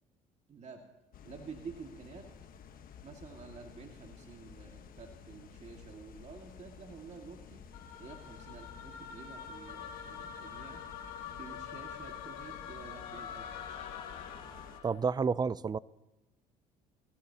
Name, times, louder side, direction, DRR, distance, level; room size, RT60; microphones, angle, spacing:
voice 1, 0.5-0.8 1.2-2.3 3.0-7.6 8.0-10.8 11.3-13.7, right 5 dB, 40° right, 2.2 m, -50 dB
sound 1, 1.1-14.8, left 7 dB, 55° left, 1.4 m, -53 dB
sound 2, 7.7-15.0, left 8 dB, 75° left, 2.8 m, -45 dB
voice 2, 14.8-15.8, right 5 dB, 25° right, 0.5 m, -30 dB
22.5 x 16.0 x 2.9 m
supercardioid pair, 70°, 18 cm